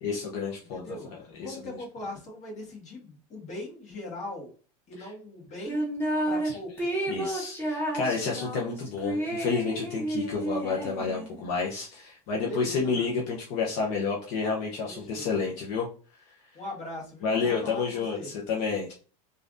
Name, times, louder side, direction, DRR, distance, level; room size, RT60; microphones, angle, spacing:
voice 1, 0.0-1.0 1.4-1.7 5.0-5.1 6.4-6.6 7.1-15.9 17.2-18.9, left 5 dB, 65° left, -2 dB, 0.7 m, -30 dB
voice 2, 0.7-4.5 4.9-5.9 6.3-7.0 12.3-13.2 14.8-15.4 16.5-18.3, left 2 dB, 35° left, -2 dB, 1.5 m, -40 dB
sound 1, 5.7-6.5 6.8-11.4, right 1 dB, 10° left, 1.1 m, -31 dB
3.1 x 2.5 x 2.5 m, 0.39 s
supercardioid pair, 105°, 19 cm